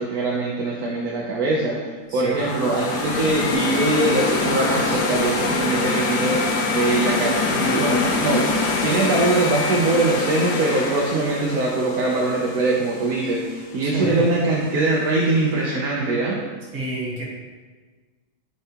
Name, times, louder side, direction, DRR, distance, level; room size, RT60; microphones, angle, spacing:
voice 1, 0.0-16.4, right 2 dB, 70° right, -3 dB, 1.3 m, -22 dB
sound 1, 2.3-13.3, left 4 dB, 90° left, 1.5 m, -24 dB
voice 2, 13.8-14.3 16.7-17.3, right 2 dB, 50° right, -4 dB, 1.8 m, -28 dB
9.9 x 4.6 x 2.9 m, 1.4 s
omnidirectional pair, 1.7 m